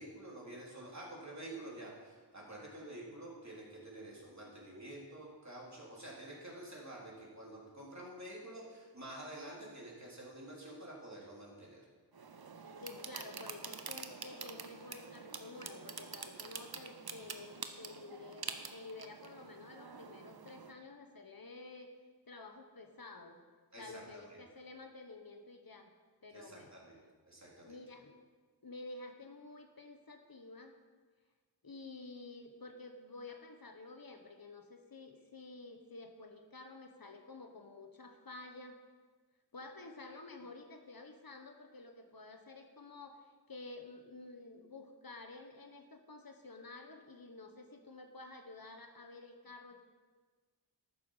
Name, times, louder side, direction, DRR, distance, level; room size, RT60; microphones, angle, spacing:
voice 1, 0.0-11.8 23.7-24.4 26.3-27.8, right 1 dB, 40° right, -4 dB, 3.5 m, -49 dB
sound 1, 12.1-20.7, right 5 dB, 60° right, 0.9 m, -47 dB
voice 2, 12.8-21.9 22.2-23.4 23.8-25.9 26.2-26.7 27.6-28.2 28.6-30.7 31.6-38.8 39.5-49.8, left 3 dB, 55° left, 5 dB, 1.1 m, -51 dB
12.5 x 9.2 x 4.9 m, 1.4 s
wide cardioid pair, 60°, 42 cm